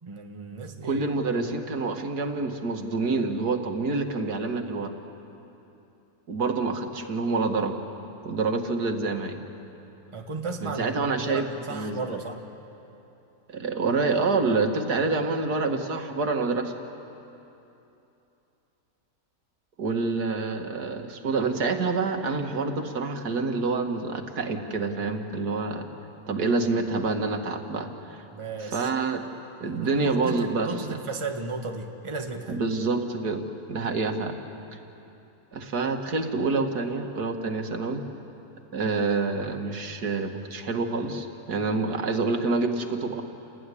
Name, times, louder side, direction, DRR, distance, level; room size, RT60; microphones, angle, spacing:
voice 1, 0.0-1.0 1.4-1.5 10.1-12.4 15.7-15.8 28.3-28.9 29.6-32.6, right 3 dB, 20° right, 3 dB, 1.5 m, -35 dB
voice 2, 0.8-4.9 6.3-7.8 8.2-9.4 10.6-12.2 13.5-16.7 19.8-25.9 26.3-28.2 28.6-29.2 29.6-31.0 32.5-33.4 33.7-34.3 35.5-38.0 38.7-43.2, right 3 dB, 85° right, 5 dB, 2.2 m, -27 dB
29.0 x 19.0 x 9.9 m, 2.9 s
omnidirectional pair, 1.6 m